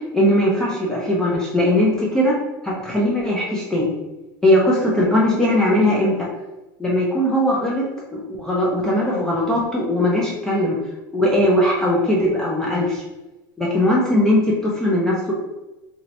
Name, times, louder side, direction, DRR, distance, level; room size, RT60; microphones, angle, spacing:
voice 1, 0.0-2.3 2.6-3.9 4.4-6.3 6.8-7.9 8.1-10.8 11.1-13.0 13.6-15.3, left 1 dB, 5° left, -5 dB, 0.3 m, -19 dB
2.7 x 2.5 x 3.0 m, 1.0 s
cardioid pair, 175°, 10 cm